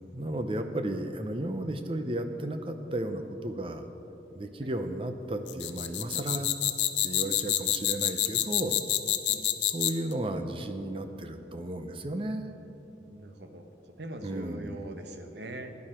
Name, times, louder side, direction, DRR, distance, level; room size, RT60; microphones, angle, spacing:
voice 1, 0.1-3.9 4.3-6.5 7.0-8.8 9.6-12.4 14.2-14.8, right 1 dB, 30° right, 7 dB, 0.7 m, -34 dB
sound 1, 5.5-10.1, left 12 dB, 85° left, 0.7 m, -27 dB
voice 2, 13.0-13.7 14.0-15.7, right 1 dB, 75° right, 6 dB, 1.1 m, -42 dB
15.5 x 10.5 x 4.4 m, 3.0 s
head